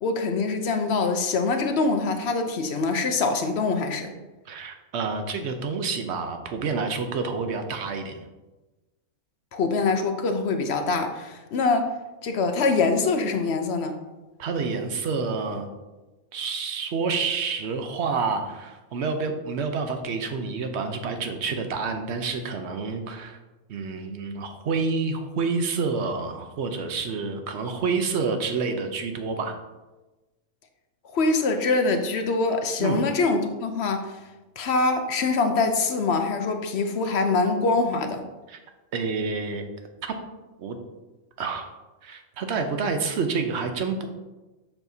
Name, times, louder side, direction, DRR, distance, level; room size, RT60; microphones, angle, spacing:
voice 1, 0.0-4.1 9.5-11.9 12.2-13.9 31.1-34.2 34.6-38.2, left 3 dB, 60° left, 6 dB, 0.8 m, -24 dB
voice 2, 4.5-8.2 14.4-15.7 16.3-23.4 23.7-29.6 32.8-33.0 38.5-38.6 38.9-39.6 40.0-40.1 40.6-40.8 41.4-41.6 42.0-44.1, right 4 dB, 60° right, 6 dB, 0.9 m, -28 dB
7.2 x 5.8 x 2.7 m, 1.1 s
omnidirectional pair, 1.5 m